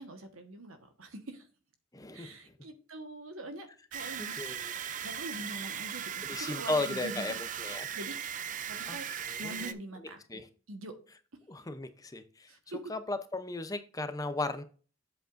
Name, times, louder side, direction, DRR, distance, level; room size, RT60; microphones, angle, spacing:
voice 1, 0.0-1.5 2.1-4.5 5.0-7.4 7.9-8.2 8.7-9.1 9.4-10.4 10.7-10.9 12.5-12.8, right 1 dB, 85° right, 7 dB, 1.4 m, -44 dB
voice 2, 1.9-2.3 4.2-4.7 6.3-7.9 8.9-9.0 9.3-10.5 11.5-12.5 12.9-14.6, left 2 dB, 15° left, 10 dB, 0.6 m, -36 dB
sound 1, 3.9-9.7, right 8 dB, 40° right, 0.5 m, -38 dB
8.0 x 7.6 x 2.6 m, 0.38 s
head